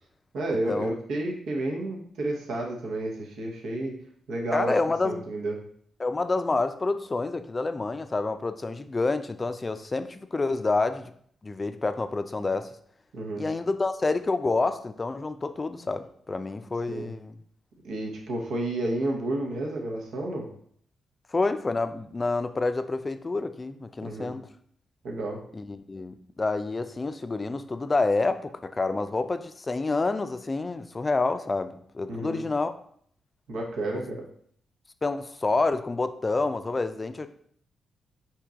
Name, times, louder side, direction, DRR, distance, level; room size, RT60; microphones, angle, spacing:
voice 1, 0.3-3.9 4.3-4.8 5.0-5.6 13.1-13.4 16.9-17.1 17.8-20.5 24.0-24.4 25.0-25.4 32.1-32.4 33.5-34.2, right 1 dB, 80° right, 0 dB, 0.9 m, -31 dB
voice 2, 4.5-5.3 6.0-11.1 11.4-12.7 13.4-17.4 21.3-24.5 25.5-32.7 33.9-34.0 35.0-37.3, left 3 dB, 30° left, 10 dB, 0.4 m, -28 dB
4.5 x 2.9 x 3.6 m, 0.63 s
supercardioid pair, 60°, 0 cm